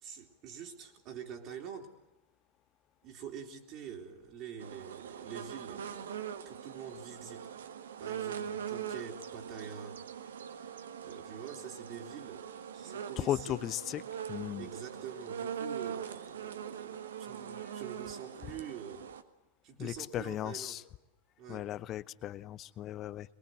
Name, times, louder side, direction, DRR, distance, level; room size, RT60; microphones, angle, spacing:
voice 1, 0.0-1.9 3.0-6.1 6.4-7.5 8.0-10.0 11.0-12.5 12.7-13.6 14.6-19.1 19.6-20.8 21.4-21.7, right 7 dB, 40° right, 2 dB, 3.0 m, -46 dB
sound 1, 4.6-19.2, right 8 dB, 65° right, 1.6 m, -42 dB
voice 2, 13.2-14.0 14.3-14.7 17.6-17.7 19.8-20.8 21.5-23.3, left 12 dB, 30° left, 18 dB, 0.9 m, -36 dB
23.5 x 22.0 x 7.9 m, 0.96 s
figure-of-eight pair, 90°, 0 cm